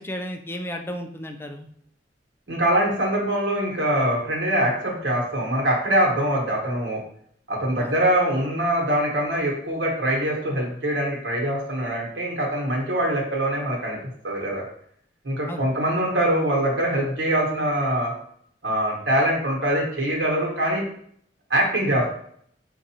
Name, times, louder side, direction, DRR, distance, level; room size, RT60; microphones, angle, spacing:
voice 1, 0.0-1.7 7.8-7.9 15.5-15.6 21.8-21.9, equal, 15° left, 4 dB, 0.3 m, -33 dB
voice 2, 2.5-7.0 7.5-14.0 14.2-14.6 15.2-18.1 18.6-20.8 21.5-22.1, right 1 dB, 85° right, -3 dB, 1.2 m, -23 dB
4.6 x 2.5 x 2.8 m, 0.64 s
head